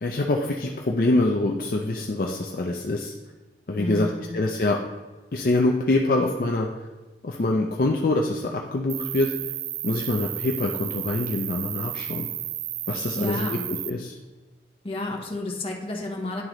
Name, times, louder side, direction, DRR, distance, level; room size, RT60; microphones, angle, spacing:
voice 1, 0.0-3.1 3.7-4.8 5.3-6.7 7.2-9.3 9.8-12.3 12.9-14.2, left 2 dB, 50° left, 1 dB, 0.5 m, -25 dB
voice 2, 3.7-4.3 13.1-13.6 14.8-16.4, left 2 dB, 30° left, 0 dB, 1.0 m, -31 dB
Cricket, 8.9-13.9, right 13 dB, 80° right, 0.4 m, -33 dB
10.5 x 3.8 x 3.1 m, 1.2 s
head